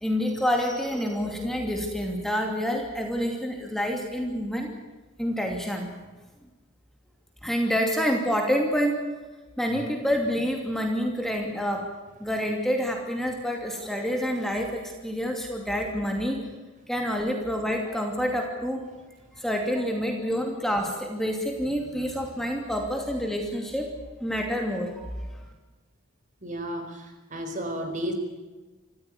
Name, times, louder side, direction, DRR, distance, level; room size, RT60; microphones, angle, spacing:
voice 1, 0.0-4.7 5.2-5.9 7.4-9.0 9.6-11.9 12.2-16.4 16.9-19.1 19.4-23.9 24.2-25.3, equal, ahead, 2 dB, 2.7 m, -28 dB
voice 2, 26.4-28.1, equal, 40° right, 5 dB, 4.7 m, -33 dB
25.5 x 15.5 x 9.8 m, 1.2 s
head